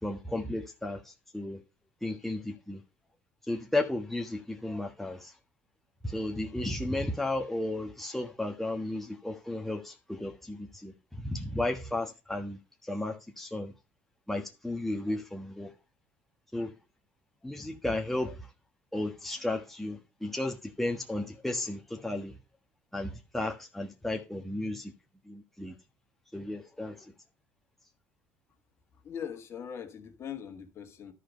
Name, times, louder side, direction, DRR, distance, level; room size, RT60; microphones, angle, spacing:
voice 1, 0.0-1.6 2.0-2.8 3.5-5.3 6.0-13.7 14.3-15.7 16.5-16.7 17.4-18.5 18.9-22.4 22.9-24.9 25.3-25.7 26.3-27.1, left 2 dB, 5° left, 1.3 m, -34 dB
voice 2, 29.0-31.1, left 8 dB, 45° left, 1.9 m, -41 dB
11.5 x 5.1 x 5.3 m
supercardioid pair, 95°, 6 cm